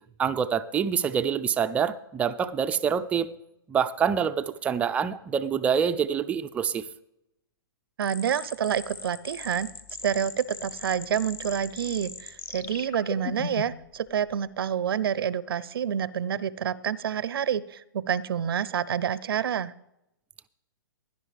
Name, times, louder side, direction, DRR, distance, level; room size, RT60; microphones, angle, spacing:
voice 1, 0.2-3.3 3.7-6.8, right 7 dB, 10° right, 0.4 m, -26 dB
sound 1, 8.0-13.9, left 5 dB, 20° left, 0.8 m, -39 dB
voice 2, 8.0-9.7 10.0-19.7, right 8 dB, 75° right, 0.5 m, -28 dB
16.5 x 10.5 x 3.3 m
hypercardioid pair, 145°, 12 cm